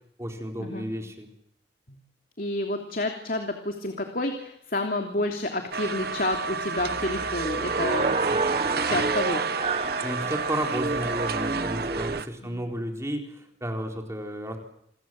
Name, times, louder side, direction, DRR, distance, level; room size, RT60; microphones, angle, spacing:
voice 1, 0.2-1.3 10.0-14.6, equal, 15° right, 3 dB, 4.1 m, -32 dB
voice 2, 2.4-8.2 8.9-9.5, left 2 dB, 55° left, 4 dB, 3.1 m, -29 dB
sound 1, 5.7-12.3, right 5 dB, 60° right, 1.2 m, -31 dB
sound 2, 6.8-12.2, right 3 dB, 35° right, 1.0 m, -29 dB
28.5 x 23.5 x 7.7 m, 0.72 s
head